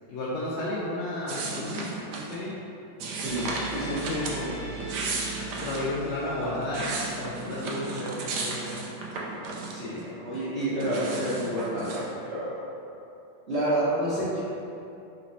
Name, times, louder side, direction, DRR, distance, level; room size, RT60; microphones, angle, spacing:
voice 1, 0.1-2.5 5.3-6.9 7.2-8.8, left 1 dB, 75° left, -8 dB, 1.4 m, -33 dB
sound 1, 1.3-2.4 3.0-4.4 4.8-5.9 6.4-10.0 10.3-12.1, right 3 dB, 75° right, 0.9 m, -34 dB
voice 2, 3.1-4.6 9.7-12.5 13.5-14.4, right 1 dB, 40° right, -13 dB, 1.1 m, -29 dB
sound 2, 3.2-8.3, right 2 dB, 55° right, 0.4 m, -41 dB
4.2 x 3.1 x 4.0 m, 2.8 s
omnidirectional pair, 2.4 m